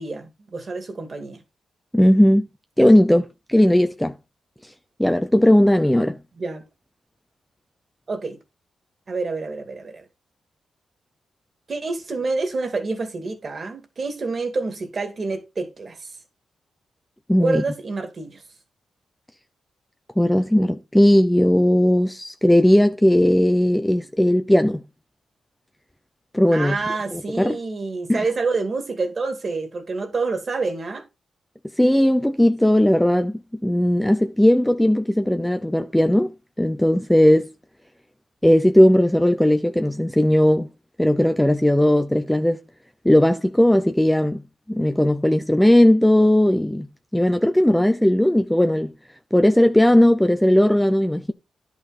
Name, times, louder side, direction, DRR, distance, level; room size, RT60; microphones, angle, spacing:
voice 1, 0.0-1.4 6.4-6.6 8.1-8.4 9.1-10.1 11.7-16.1 17.4-18.4 26.5-31.1, right 3 dB, 40° right, 2.5 m, -27 dB
voice 2, 1.9-2.5 2.8-4.1 5.0-6.2 17.3-17.6 20.2-24.8 26.3-26.8 27.1-27.6 28.1-28.2 31.8-33.3 33.6-36.3 36.6-37.5 38.4-40.7 41.0-42.6 43.0-44.4 44.7-46.9 47.1-48.9 49.3-51.3, left 1 dB, 5° left, 0.7 m, -17 dB
10.5 x 5.6 x 4.3 m
cardioid pair, 105°, 0 cm